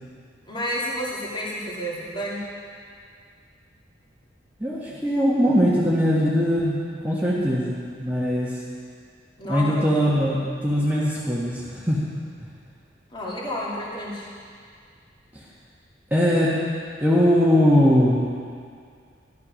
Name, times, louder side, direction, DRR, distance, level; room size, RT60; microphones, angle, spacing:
voice 1, 0.4-2.4 9.4-9.8 13.1-14.3, equal, 25° left, -6 dB, 2.7 m, -30 dB
voice 2, 4.6-8.6 9.5-10.4 10.6-12.0 15.3-15.4 16.1-16.6 17.0-18.2, equal, 10° right, -8 dB, 1.6 m, -21 dB
13.0 x 12.0 x 6.4 m, 2.2 s
head